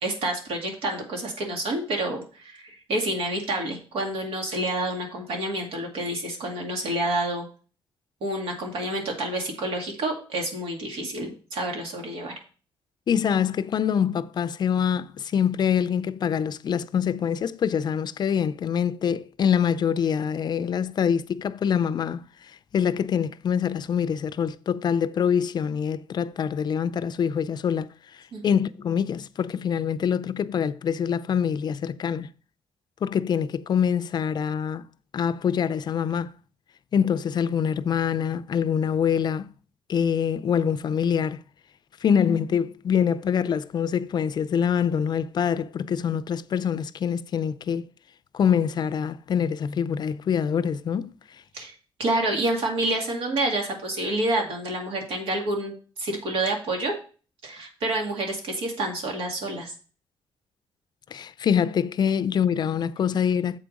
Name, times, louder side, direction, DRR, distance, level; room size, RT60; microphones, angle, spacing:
voice 1, 0.0-7.5 8.2-12.3 28.3-28.4 51.5-51.7 52.0-56.9 57.4-59.7, right 1 dB, 85° right, 2.2 m, -28 dB
voice 2, 13.1-22.2 22.7-32.3 33.0-34.9 35.1-36.3 36.9-39.5 39.9-41.4 42.0-47.9 48.3-51.1 61.1-63.6, left 7 dB, 50° left, 0.4 m, -25 dB
7.6 x 4.7 x 5.1 m
cardioid pair, 100°, 9 cm